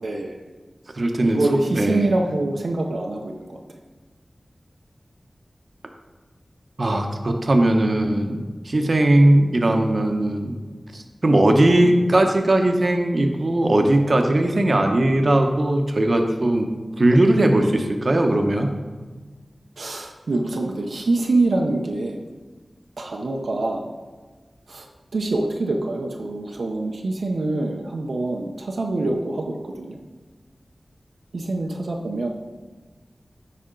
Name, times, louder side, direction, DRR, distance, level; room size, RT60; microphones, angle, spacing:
voice 1, 0.0-0.4 1.2-3.6 19.8-22.2 23.0-23.9 24.7-24.9 25.1-30.0 31.3-32.3, right 2 dB, 90° right, 1 dB, 0.7 m, -25 dB
voice 2, 0.9-1.4 1.7-2.1 6.8-10.6 10.9-16.7 17.0-18.8, right 1 dB, 60° right, 4 dB, 0.8 m, -19 dB
10.0 x 4.2 x 3.8 m, 1.4 s
wide cardioid pair, 60°, 0 cm